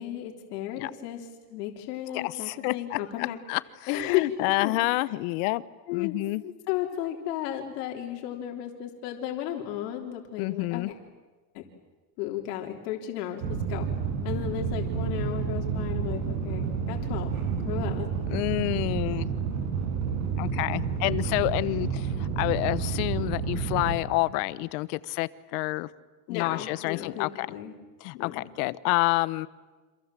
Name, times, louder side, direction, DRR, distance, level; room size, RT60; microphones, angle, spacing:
voice 1, 0.0-3.4 3.9-4.7 5.9-6.2 6.4-11.0 11.5-11.6 12.2-13.9 14.2-17.3 17.6-18.1 26.3-27.7 28.1-28.4, left 12 dB, 85° left, 2 dB, 3.5 m, -34 dB
voice 2, 2.1-3.6 3.9-5.6 5.9-6.4 10.4-10.9 18.3-19.3 20.4-25.9 26.3-27.5 28.0-29.5, left 21 dB, 70° left, 17 dB, 1.2 m, -28 dB
sound 1, 13.4-24.0, right 6 dB, 75° right, 7.5 m, -30 dB
28.5 x 27.0 x 7.6 m, 1.3 s
cardioid pair, 150°, 46 cm